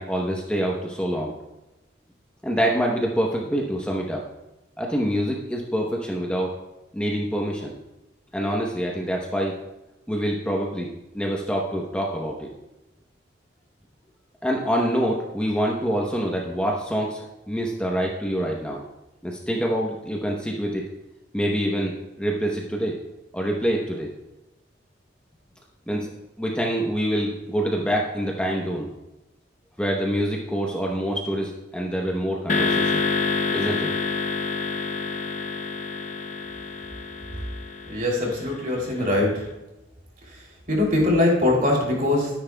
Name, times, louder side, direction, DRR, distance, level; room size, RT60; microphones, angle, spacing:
voice 1, 0.0-1.3 2.4-4.2 4.8-6.5 6.9-7.7 8.3-9.5 10.1-10.9 11.1-12.5 14.4-18.8 19.2-20.8 21.3-23.0 23.3-24.1 25.9-26.1 26.4-28.9 29.8-33.0 33.5-33.9, equal, 5° left, -1 dB, 0.9 m, -26 dB
sound 1, 32.5-38.9, left 4 dB, 40° left, 0.7 m, -27 dB
voice 2, 37.9-39.4 40.2-42.4, left 1 dB, 45° right, -2 dB, 3.0 m, -22 dB
12.5 x 10.0 x 2.3 m, 0.98 s
head